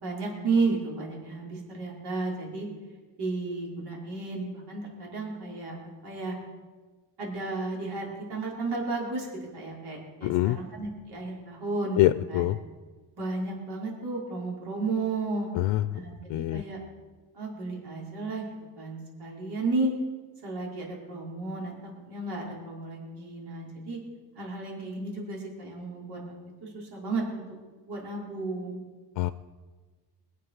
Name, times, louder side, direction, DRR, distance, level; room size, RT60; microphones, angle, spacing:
voice 1, 0.0-2.7 3.2-5.7 6.0-6.4 7.2-9.3 9.5-12.0 12.3-12.4 13.2-15.5 15.9-16.2 16.5-16.8 17.3-18.4 18.8-19.9 20.4-21.8 22.1-24.0 24.4-26.2 26.6-27.4 27.9-28.8, right 3 dB, 65° right, -3 dB, 4.8 m, -33 dB
voice 2, 10.2-10.6 12.0-12.6 15.5-16.0 16.3-16.6 29.2-29.3, left 15 dB, 90° left, 13 dB, 0.6 m, -25 dB
22.0 x 7.5 x 6.5 m, 1.4 s
cardioid pair, 105°, 43 cm